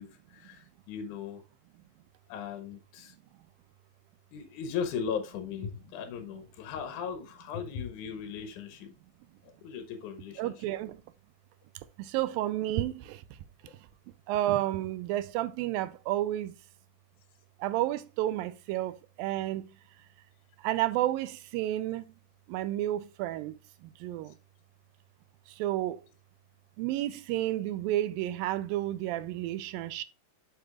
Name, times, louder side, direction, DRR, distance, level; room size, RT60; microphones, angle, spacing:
voice 1, 0.0-1.4 2.3-3.1 4.3-8.9 9.4-10.5 13.6-13.7 24.3-24.4, left 7 dB, 70° left, 2.1 m, -38 dB
voice 2, 10.4-11.0 12.0-13.2 14.3-16.5 17.6-18.9 19.2-19.7 20.6-22.0 22.5-23.5 24.0-24.3 25.6-26.0 26.8-30.0, right 14 dB, 85° right, 2.3 m, -31 dB
7.6 x 6.7 x 2.4 m
omnidirectional pair, 4.2 m